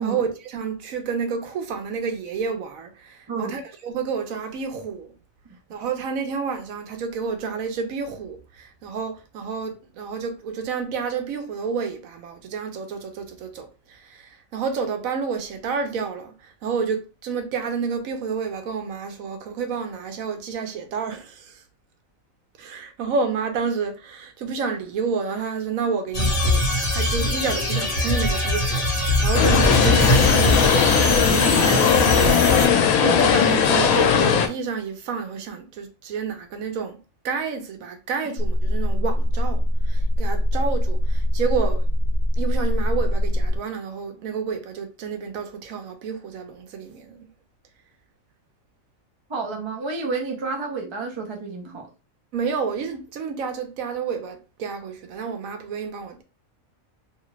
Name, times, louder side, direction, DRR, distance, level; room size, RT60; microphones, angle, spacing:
voice 1, 0.0-5.1 5.7-21.6 22.6-26.6 26.9-30.7 31.3-37.0 37.2-41.9 42.4-47.3 52.3-56.2, right 5 dB, 80° right, 1.1 m, -30 dB
sound 1, 26.1-32.7, left 1 dB, 30° left, 1.2 m, -22 dB
sound 2, 29.3-34.5, left 7 dB, 85° left, 1.0 m, -18 dB
sound 3, 38.4-43.6, left 1 dB, 60° left, 0.6 m, -22 dB
voice 2, 49.3-51.9, right 4 dB, 35° right, 0.5 m, -30 dB
2.8 x 2.4 x 3.0 m
omnidirectional pair, 1.4 m